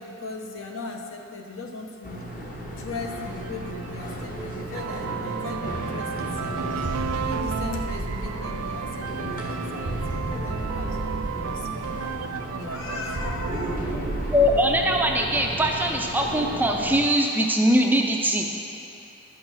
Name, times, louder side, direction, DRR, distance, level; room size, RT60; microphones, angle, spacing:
voice 1, 0.0-2.3 2.7-6.9 7.2-11.0 11.4-11.7 12.5-13.9, left 3 dB, 65° left, 2 dB, 1.0 m, -38 dB
sound 1, 2.0-17.0, equal, 35° left, 1.1 m, -35 dB
sound 2, 3.2-15.0, right 7 dB, 85° right, 0.3 m, -34 dB
sound 3, 6.8-9.1 9.8-12.1 13.2-15.4, right 2 dB, 65° right, 0.7 m, -33 dB
voice 2, 14.3-18.5, equal, 10° right, 1 dB, 0.4 m, -21 dB
11.0 x 6.0 x 6.4 m, 2.9 s
head